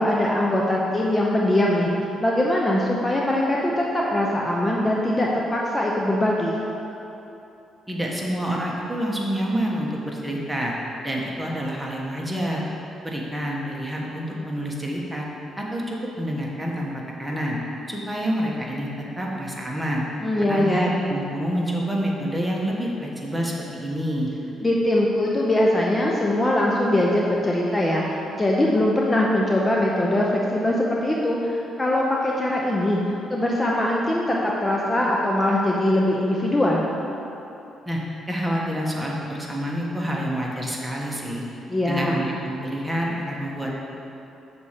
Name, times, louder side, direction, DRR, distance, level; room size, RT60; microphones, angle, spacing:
voice 1, 0.0-6.6 20.2-21.0 24.6-36.8 41.7-42.2, left 1 dB, 20° left, -3 dB, 0.7 m, -22 dB
voice 2, 7.9-10.7 11.0-12.6 13.0-15.2 15.6-16.9 17.2-17.6 17.9-18.9 19.2-20.0 20.4-24.3 37.8-38.0 38.3-41.4 41.9-43.7, equal, 10° right, -3 dB, 1.3 m, -27 dB
6.7 x 4.3 x 6.5 m, 2.9 s
cardioid pair, 90°, 0 cm